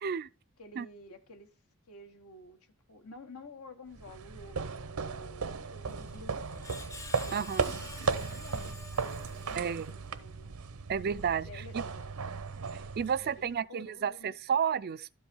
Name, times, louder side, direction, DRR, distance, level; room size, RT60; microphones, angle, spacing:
voice 1, 0.6-1.5 1.9-2.6 2.9-6.4 7.2-7.4 7.7-10.5 11.4-11.9 13.2-14.3, left 2 dB, 80° left, 1.5 m, -51 dB
sound 1, 3.9-13.6, right 5 dB, 85° right, 0.8 m, -36 dB
Screech, 5.9-10.2, left 2 dB, 15° left, 0.7 m, -49 dB
voice 2, 7.3-7.7 9.5-9.9 10.9-11.8 13.0-15.2, right 7 dB, 45° right, 0.4 m, -32 dB
12.5 x 5.4 x 4.4 m
head